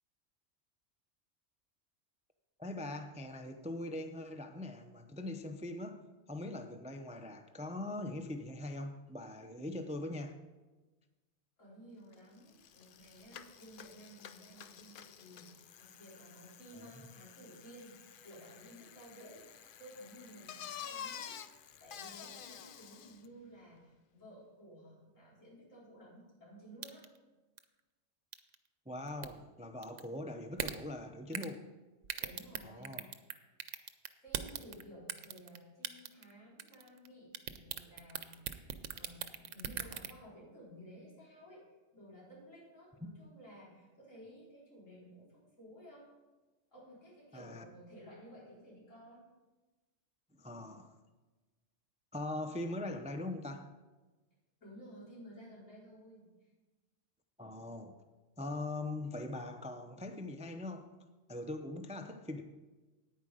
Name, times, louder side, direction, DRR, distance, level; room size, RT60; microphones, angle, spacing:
voice 1, 2.6-6.0 6.3-10.3 16.7-16.9 28.9-31.6 32.6-33.1 47.3-47.7 50.4-50.9 52.1-53.7 57.4-58.0 58.4-60.9 61.3-62.4, left 2 dB, 10° right, 7 dB, 0.3 m, -41 dB
voice 2, 11.6-19.4 19.8-21.4 21.8-27.0 32.2-33.0 34.2-46.1 46.7-49.2 54.6-56.5, equal, 85° left, -7 dB, 4.7 m, -55 dB
Bicycle, 12.1-12.2 12.5-23.3, left 8 dB, 60° left, 0.6 m, -50 dB
sound 1, 26.8-27.2 27.6-27.7 28.3-28.5 29.1-29.3 29.8-30.0 30.6-30.7 31.3-31.5 32.0-33.3 33.6-34.8 35.1-35.6 35.8-36.3 36.6-37.1 37.3-40.1, right 9 dB, 80° right, 1.0 m, -39 dB
9.5 x 9.3 x 5.0 m, 1.2 s
omnidirectional pair, 1.3 m